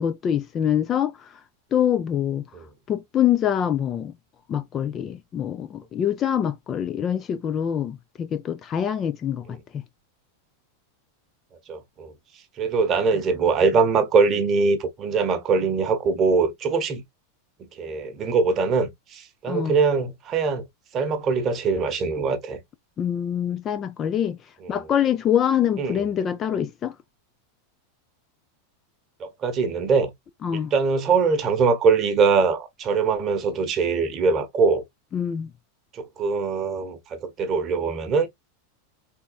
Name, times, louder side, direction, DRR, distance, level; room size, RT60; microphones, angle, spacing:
voice 1, 0.0-1.4 1.7-2.4 2.9-4.1 4.5-9.8 19.5-19.8 23.0-24.4 24.7-26.9 30.4-30.7 35.1-35.5, left 9 dB, 25° left, 0.4 m, -25 dB
voice 2, 11.7-12.1 12.6-17.0 17.8-20.7 20.9-22.6 25.8-26.0 29.2-30.1 30.5-34.8 35.9-38.3, right 4 dB, 30° right, 0.9 m, -22 dB
4.1 x 3.5 x 2.3 m
figure-of-eight pair, 90°, 0 cm